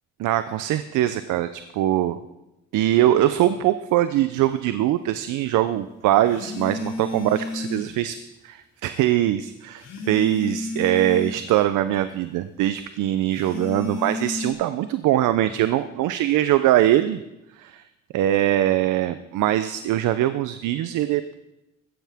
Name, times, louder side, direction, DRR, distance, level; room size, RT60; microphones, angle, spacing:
voice 1, 0.2-2.2 2.7-8.2 8.4-17.2 17.6-17.8 18.1-21.4, right 13 dB, 85° right, 12 dB, 0.6 m, -22 dB
sound 1, 4.3-4.5 6.3-8.0 9.8-11.5 13.3-14.5, left 3 dB, 60° left, 3.7 m, -32 dB
15.0 x 13.5 x 3.5 m, 0.93 s
cardioid pair, 90°, 30 cm